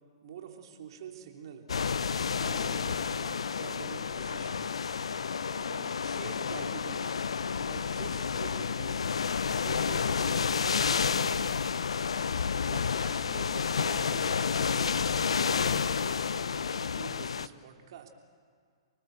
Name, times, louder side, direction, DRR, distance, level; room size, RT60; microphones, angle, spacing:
voice 1, 0.2-1.7 2.3-4.7 5.5-7.1 7.6-9.0 9.4-11.6 12.6-18.1, right 8 dB, 60° right, 3 dB, 3.0 m, -47 dB
sound 1, 1.7-17.5, left 6 dB, 80° left, 0.6 m, -30 dB
29.5 x 19.0 x 8.1 m, 2.1 s
hypercardioid pair, 120°, 3 cm